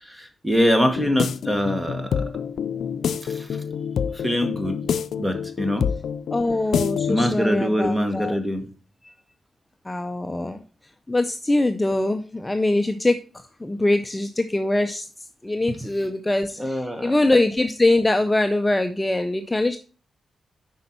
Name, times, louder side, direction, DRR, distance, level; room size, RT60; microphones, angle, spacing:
voice 1, 0.0-2.2 3.2-3.5 4.1-4.8 5.2-5.8 7.1-8.6 16.6-17.1, equal, 10° right, 6 dB, 1.1 m, -23 dB
sound 1, 0.8-7.4, left 7 dB, 80° left, 0.4 m, -27 dB
voice 2, 6.3-8.4 9.9-10.6 11.1-13.2 13.6-15.1 15.4-19.8, left 2 dB, 10° left, 7 dB, 0.4 m, -23 dB
8.1 x 5.3 x 4.3 m, 0.40 s
wide cardioid pair, 135°, 0 cm